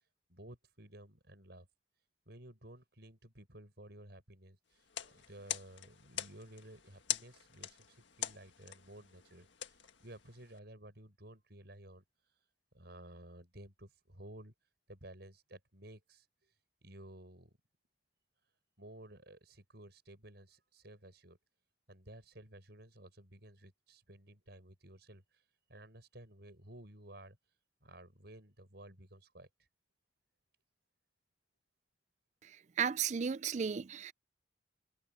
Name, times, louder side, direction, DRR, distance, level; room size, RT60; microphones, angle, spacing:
voice 1, 0.3-1.7 2.3-12.4 12.7-14.5 14.9-16.5 16.8-17.5 18.8-21.4 21.9-25.4 25.7-27.4 27.8-29.5, right 1 dB, 60° right, 7.3 m, -54 dB
sound 1, 4.8-10.6, left 11 dB, 75° left, 1.7 m, -44 dB
voice 2, 32.8-34.1, right 7 dB, 40° right, 0.4 m, -34 dB
head